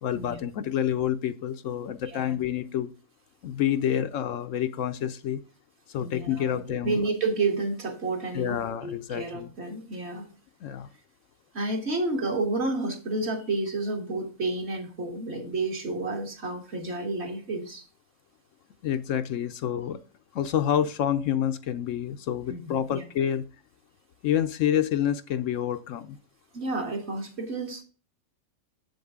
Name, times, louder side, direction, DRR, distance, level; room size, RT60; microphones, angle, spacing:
voice 1, 0.0-2.9 3.4-5.4 5.9-7.0 8.3-9.5 10.6-10.9 18.8-20.0 20.3-23.5 24.2-26.2, left 10 dB, 70° left, 11 dB, 0.9 m, -28 dB
voice 2, 6.0-10.3 11.5-17.8 22.5-23.0 26.5-27.8, right 3 dB, 50° right, 3 dB, 1.9 m, -30 dB
7.8 x 7.7 x 3.6 m, 0.36 s
omnidirectional pair, 1.4 m